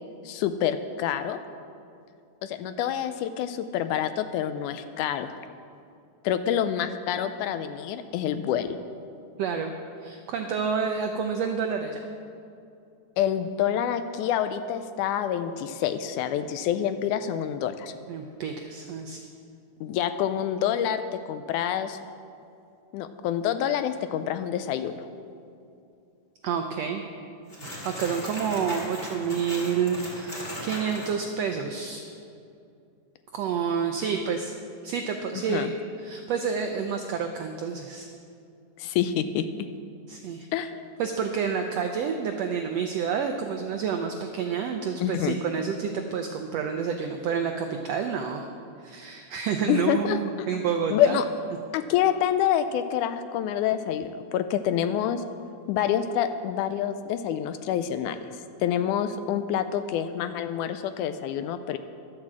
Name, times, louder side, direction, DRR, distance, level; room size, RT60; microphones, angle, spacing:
voice 1, 0.3-1.4 2.4-5.3 6.2-8.8 13.2-17.9 19.8-21.0 21.3-22.0 22.9-25.0 35.5-35.7 38.8-39.5 40.5-40.7 45.0-45.4 49.7-50.5 50.9-51.3 51.7-55.2 55.7-58.2 58.6-61.8, left 10 dB, 80° left, 10 dB, 1.9 m, -27 dB
voice 2, 9.4-9.7 10.0-12.0 18.1-19.2 26.4-27.0 27.8-32.1 33.3-34.5 34.8-35.7 36.0-38.1 40.1-40.5 41.0-48.5 48.8-51.2, right 6 dB, 90° right, 4 dB, 1.4 m, -29 dB
sound 1, 27.5-31.1, left 1 dB, 20° left, 2.8 m, -38 dB
11.5 x 7.5 x 7.4 m, 2.5 s
omnidirectional pair, 3.7 m